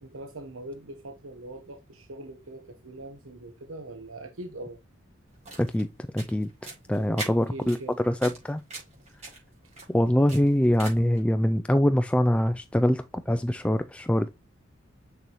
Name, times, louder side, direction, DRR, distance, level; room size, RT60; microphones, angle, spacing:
voice 1, 0.0-4.8 6.9-8.0, right 2 dB, 90° right, 1.0 m, -42 dB
sound 1, 5.3-11.2, right 2 dB, 35° right, 4.5 m, -43 dB
voice 2, 5.6-5.9 6.1-6.5 6.9-8.6 9.9-14.3, left 1 dB, 5° left, 0.3 m, -24 dB
6.7 x 6.1 x 3.0 m
head